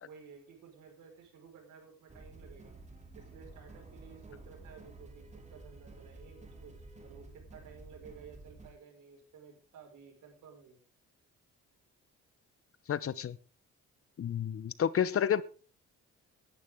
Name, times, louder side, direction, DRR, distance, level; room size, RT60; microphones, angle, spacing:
voice 1, 0.0-2.7 3.1-5.3 5.5-6.8 7.0-10.8, right 6 dB, 80° right, 5.0 m, -54 dB
sound 1, 2.1-8.7, right 2 dB, 25° right, 2.8 m, -52 dB
voice 2, 12.9-13.4 14.2-15.4, left 8 dB, 50° left, 0.9 m, -30 dB
17.0 x 11.0 x 3.6 m
cardioid pair, 90°, 30 cm